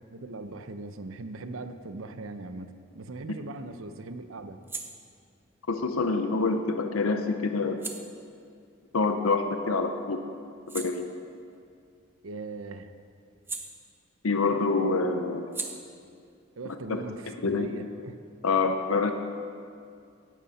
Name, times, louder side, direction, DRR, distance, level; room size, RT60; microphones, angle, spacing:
voice 1, 0.1-4.6 12.2-12.9 16.6-18.2, right 3 dB, 80° right, 9 dB, 0.7 m, -40 dB
sound 1, 2.9-9.8 10.2-14.4 14.7-18.1, right 3 dB, 10° right, 0.7 m, -45 dB
voice 2, 5.7-7.8 8.9-10.2 10.7-11.1 14.2-15.5 16.6-17.0 17.4-17.7 18.4-19.1, left 3 dB, 90° left, 6 dB, 0.7 m, -26 dB
15.5 x 11.5 x 4.2 m, 2.4 s
head